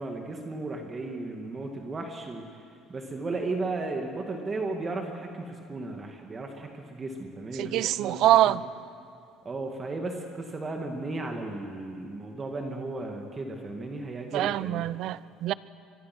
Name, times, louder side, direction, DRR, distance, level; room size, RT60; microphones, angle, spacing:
voice 1, 0.0-2.6 2.9-8.6 9.4-14.9, right 2 dB, 25° right, 3 dB, 2.2 m, -35 dB
voice 2, 7.6-8.6 14.3-15.5, right 14 dB, 65° right, 18 dB, 0.6 m, -24 dB
24.5 x 22.5 x 6.2 m, 2.4 s
cardioid pair, 120°, 0 cm